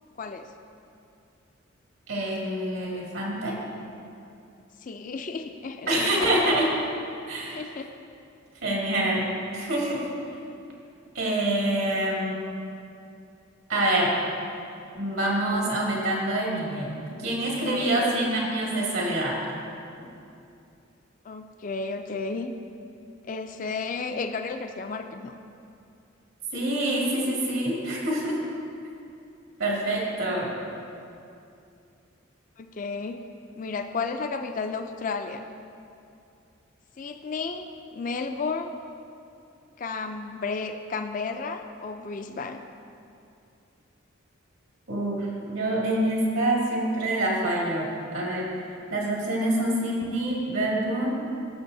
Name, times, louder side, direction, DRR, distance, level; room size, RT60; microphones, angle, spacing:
voice 1, 0.2-0.5 4.8-6.4 7.5-7.9 17.7-18.2 21.2-22.5 23.2-25.3 32.6-33.2 33.6-35.5 37.0-37.7 37.9-38.7 39.8-42.6, left 4 dB, 40° left, 6 dB, 0.4 m, -33 dB
voice 2, 2.1-3.6 5.9-6.7 7.3-7.6 8.6-10.0 11.1-12.3 13.7-14.1 14.9-16.9 17.2-19.4 26.5-28.4 29.6-30.5 44.9-47.9 48.1-48.5 48.9-51.2, right 1 dB, 80° right, -4 dB, 2.2 m, -26 dB
17.5 x 6.9 x 2.7 m, 2.6 s
head